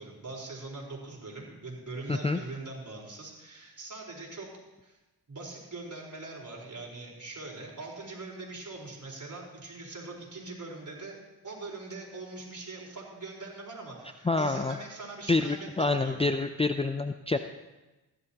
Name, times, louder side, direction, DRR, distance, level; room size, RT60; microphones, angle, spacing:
voice 1, 0.0-4.5 4.8-5.0 5.3-11.2 11.4-16.2, right 3 dB, 45° right, -2 dB, 4.3 m, -42 dB
voice 2, 2.1-2.4 14.2-14.8 15.3-17.4, left 3 dB, 15° left, 8 dB, 0.5 m, -27 dB
15.5 x 11.5 x 2.9 m, 1.1 s
supercardioid pair, 50°, 41 cm